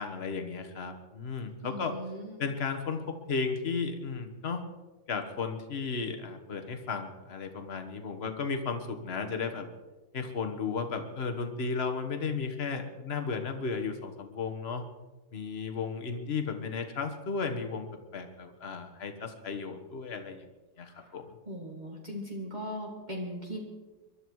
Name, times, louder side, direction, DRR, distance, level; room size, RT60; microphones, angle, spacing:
voice 1, 0.0-2.0 2.4-4.6 5.1-9.7 10.1-14.8 15.3-20.5 20.8-21.4, left 5 dB, 40° left, 6 dB, 1.5 m, -34 dB
voice 2, 1.6-2.4 20.9-21.2 21.5-23.6, equal, 25° right, -2 dB, 2.3 m, -39 dB
23.0 x 12.0 x 4.7 m, 1.2 s
omnidirectional pair, 1.7 m